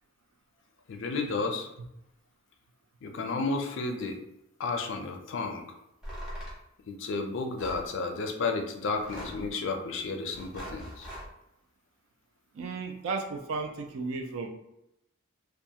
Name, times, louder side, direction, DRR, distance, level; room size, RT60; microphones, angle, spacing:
voice 1, 0.9-1.7 3.0-4.2 4.6-5.8 6.9-11.1, left 3 dB, 65° left, 4 dB, 0.4 m, -32 dB
sound 1, 6.0-6.6 7.6-7.9 8.9-9.5 10.3-11.3, equal, 5° right, 0.7 m, -41 dB
voice 2, 12.5-14.5, right 4 dB, 75° right, 4 dB, 0.4 m, -34 dB
2.4 x 2.2 x 2.7 m, 0.84 s
head